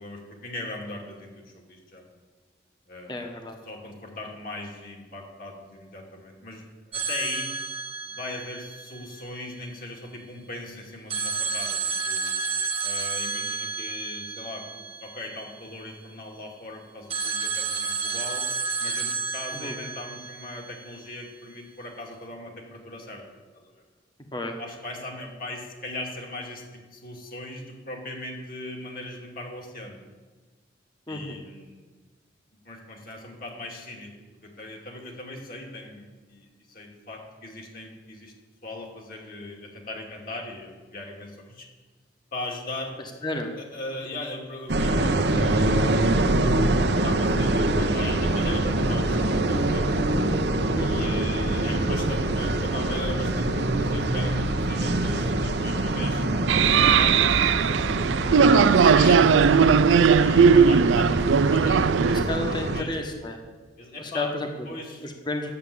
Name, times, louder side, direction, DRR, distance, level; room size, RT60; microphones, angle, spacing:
voice 1, 0.0-2.0 2.9-3.1 3.7-7.5 8.1-12.3 12.8-18.4 18.8-23.2 23.5-23.8 24.6-30.0 31.1-31.9 32.6-34.1 34.4-38.3 38.6-41.7 42.3-42.9 43.7-46.7 47.0-50.0 50.8-56.3 56.6-59.3 60.1-62.2 62.5-62.9 63.8-64.3 64.7-65.1, left 2 dB, 50° left, 0 dB, 2.5 m, -39 dB
voice 2, 3.1-3.6 19.5-19.7 24.3-24.6 31.1-31.4 43.2-43.5 50.8-51.1 58.4-59.6 62.1-63.4 64.0-64.7 65.0-65.5, left 2 dB, 25° left, 3 dB, 1.4 m, -32 dB
sound 1, 6.9-9.8 11.1-16.0 17.1-21.3, right 5 dB, 35° right, 1.2 m, -31 dB
sound 2, 44.7-62.8, right 1 dB, 60° right, 0.9 m, -25 dB
sound 3, 56.5-62.2, right 6 dB, 85° right, 0.4 m, -18 dB
11.0 x 7.5 x 8.5 m, 1.4 s
head